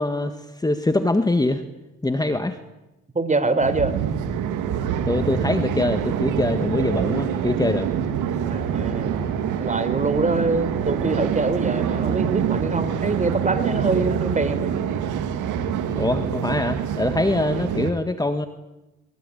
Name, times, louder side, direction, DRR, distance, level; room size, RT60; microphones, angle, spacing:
voice 1, 0.0-1.6 2.0-2.6 5.1-7.9 16.0-18.5, left 2 dB, 15° left, 8 dB, 1.7 m, -23 dB
voice 2, 3.1-3.9 8.5-9.2 9.6-14.8, right 3 dB, 25° right, 11 dB, 3.8 m, -24 dB
sound 1, 3.6-17.9, right 8 dB, 90° right, 2.2 m, -25 dB
22.5 x 22.5 x 9.9 m, 1.0 s
cardioid pair, 90°, 30 cm